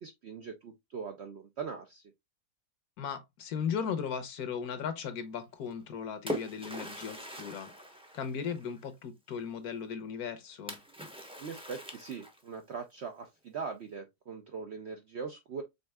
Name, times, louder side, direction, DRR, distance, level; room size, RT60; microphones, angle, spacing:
voice 1, 0.0-2.0 11.4-15.6, right 5 dB, 65° right, 0.7 m, -41 dB
voice 2, 3.0-7.7 8.1-10.8, left 7 dB, 65° left, 1.3 m, -37 dB
Splash splatter, 5.7-8.9 10.7-12.6, equal, 5° right, 0.6 m, -42 dB
5.3 x 3.6 x 2.2 m
omnidirectional pair, 1.7 m